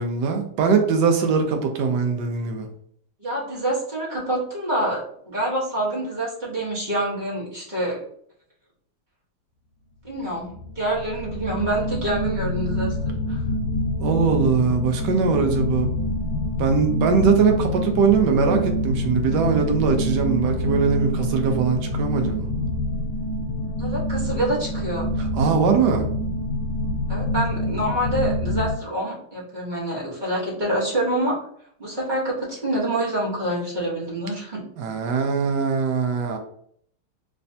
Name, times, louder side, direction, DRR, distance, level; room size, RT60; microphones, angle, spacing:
voice 1, 0.0-2.7 14.0-15.9 16.6-22.4 25.2-26.0 34.8-36.4, right 5 dB, 75° right, 4 dB, 1.0 m, -21 dB
voice 2, 3.2-8.0 10.0-10.5 10.8-13.4 23.8-25.1 27.1-31.3 31.8-34.6, right 1 dB, 30° right, -6 dB, 0.9 m, -26 dB
sound 1, 10.5-28.8, left 1 dB, 70° left, 1.3 m, -26 dB
3.3 x 3.3 x 2.7 m, 0.64 s
omnidirectional pair, 2.4 m